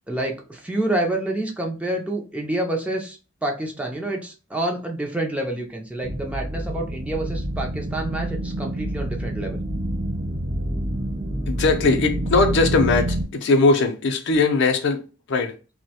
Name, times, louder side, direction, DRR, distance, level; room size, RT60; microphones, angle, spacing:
voice 1, 0.1-9.6, right 1 dB, 5° right, 0.4 m, -28 dB
sound 1, 6.0-13.2, right 1 dB, 50° right, 0.9 m, -27 dB
voice 2, 11.5-15.6, left 3 dB, 60° left, 0.5 m, -20 dB
2.3 x 2.1 x 2.7 m
head